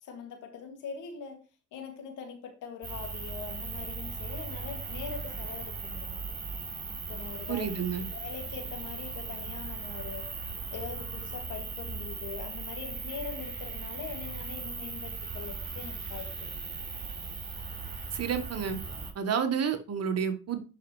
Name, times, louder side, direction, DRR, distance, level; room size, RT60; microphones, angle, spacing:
voice 1, 0.0-1.4 1.7-6.2 7.1-10.3 10.7-16.7, left 6 dB, 85° left, 3 dB, 2.5 m, -42 dB
sound 1, 2.8-19.1, right 4 dB, 35° right, 4.1 m, -38 dB
voice 2, 7.5-8.0 18.1-18.8 19.1-20.6, right 7 dB, 55° right, 7 dB, 1.5 m, -30 dB
10.5 x 5.4 x 3.2 m, 0.34 s
cardioid pair, 90°, 30 cm